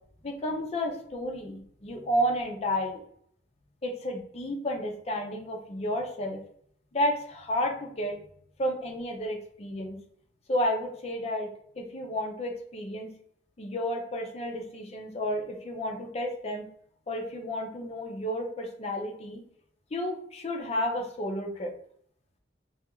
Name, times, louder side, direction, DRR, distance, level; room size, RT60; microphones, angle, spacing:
voice 1, 0.2-3.0 3.8-6.4 6.9-8.2 8.6-10.0 10.5-11.5 11.8-13.1 13.6-16.6 17.1-19.4 19.9-21.7, equal, 35° left, 2 dB, 0.5 m, -31 dB
2.4 x 2.3 x 2.9 m, 0.64 s
head